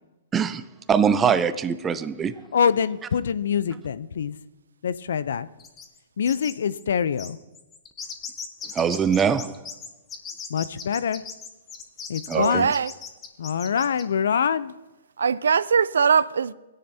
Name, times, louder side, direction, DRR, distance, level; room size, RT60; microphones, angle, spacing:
voice 1, 0.3-0.6 0.9-2.4 8.7-9.7 12.3-12.7, right 7 dB, 15° right, 0.5 m, -23 dB
voice 2, 2.5-4.4 4.8-5.5 6.2-7.4 10.5-11.2 12.1-12.7 13.4-14.7, left 7 dB, 75° left, 0.5 m, -25 dB
sound 1, 5.6-6.0 6.3-6.5 6.8-6.9 7.2-14.0, left 6 dB, 20° left, 0.9 m, -38 dB
voice 3, 12.3-12.9 15.2-16.5, right 6 dB, 85° right, 0.3 m, -21 dB
16.0 x 10.0 x 2.8 m
hypercardioid pair, 140°, 0 cm